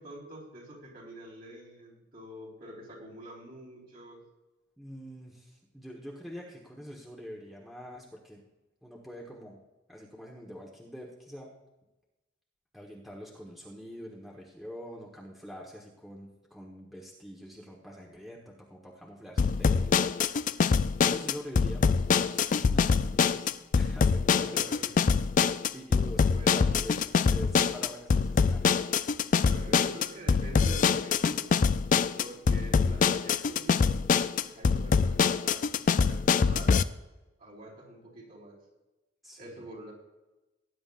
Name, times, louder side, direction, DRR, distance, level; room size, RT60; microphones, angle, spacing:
voice 1, 0.0-4.2 24.3-25.1 26.3-26.5 29.4-31.6 32.2-34.0 34.4-36.8 37.4-38.6 39.4-39.9, right 1 dB, 50° right, -4 dB, 4.3 m, -46 dB
voice 2, 4.8-8.4 8.8-9.6 9.9-11.5 12.7-20.0 21.0-24.9 25.7-28.9 29.4-29.8 37.7-37.8 39.2-39.6, equal, ahead, -3 dB, 1.3 m, -45 dB
sound 1, 19.4-36.8, left 5 dB, 40° left, 0.4 m, -25 dB
18.5 x 10.0 x 2.5 m, 1.1 s
head